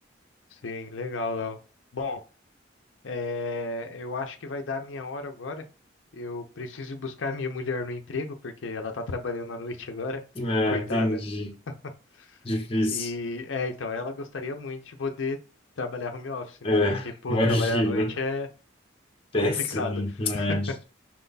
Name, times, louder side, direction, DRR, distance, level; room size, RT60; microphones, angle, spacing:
voice 1, 0.5-1.6 1.9-2.2 3.0-5.6 6.1-10.2 10.7-11.1 12.2-12.4 12.9-15.4 15.8-16.8 17.2-18.5 19.4-19.9 20.3-20.6, left 3 dB, 85° left, 0.6 m, -32 dB
voice 2, 10.4-11.5 12.4-13.1 16.6-18.1 19.3-20.8, left 1 dB, 30° left, 0.8 m, -26 dB
5.9 x 2.3 x 3.9 m
head